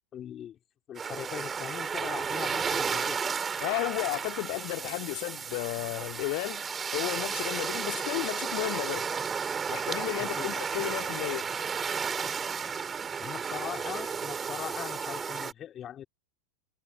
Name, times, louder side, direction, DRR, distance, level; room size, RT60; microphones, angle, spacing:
voice 1, 0.1-0.6 0.9-3.2 10.2-10.6 13.2-16.1, left 10 dB, 30° left, 3.5 m, -40 dB
sound 1, 1.0-15.5, right 6 dB, 20° right, 5.3 m, -33 dB
voice 2, 3.6-6.6 6.9-9.1 9.7-11.5, left 34 dB, 45° left, 2.1 m, -33 dB
figure-of-eight pair, 90°, 0 cm